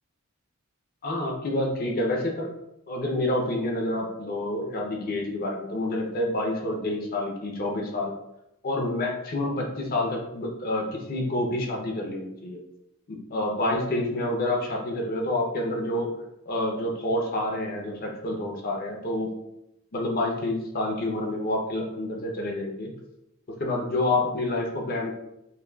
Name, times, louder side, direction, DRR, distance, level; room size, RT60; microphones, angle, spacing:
voice 1, 1.0-2.5 2.9-8.1 8.6-12.6 13.1-16.2 16.5-19.3 19.9-22.9 23.6-25.1, left 1 dB, 45° left, 0 dB, 0.6 m, -28 dB
5.7 x 2.3 x 2.3 m, 0.87 s
head